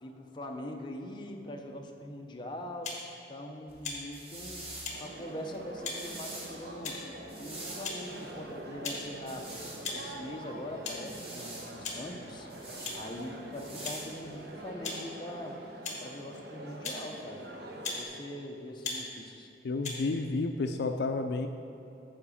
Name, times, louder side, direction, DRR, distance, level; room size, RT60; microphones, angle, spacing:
voice 1, 0.0-2.9 3.3-4.7 5.0-7.0 7.4-9.5 9.9-12.5 12.9-15.6 16.0-17.5 18.0-19.5, left 1 dB, 25° left, 2 dB, 0.7 m, -42 dB
sound 1, 2.8-3.0 3.8-4.0 4.8-5.0 5.8-6.0 6.8-7.1 7.8-8.0 8.8-9.0 9.8-10.0 10.8-11.0 11.8-12.0 12.8-13.0 13.8-14.0 14.8-15.0 15.8-16.0 16.8-17.0 17.8-18.0 18.8-19.0 19.8-20.0, left 4 dB, 40° left, 1.5 m, -37 dB
sound 2, 3.7-14.7, right 1 dB, 35° right, 1.5 m, -47 dB
sound 3, 4.9-18.0, right 1 dB, 60° right, 0.9 m, -45 dB
voice 2, 19.6-21.5, left 3 dB, 65° left, 6 dB, 0.4 m, -31 dB
8.7 x 4.9 x 7.2 m, 2.9 s
head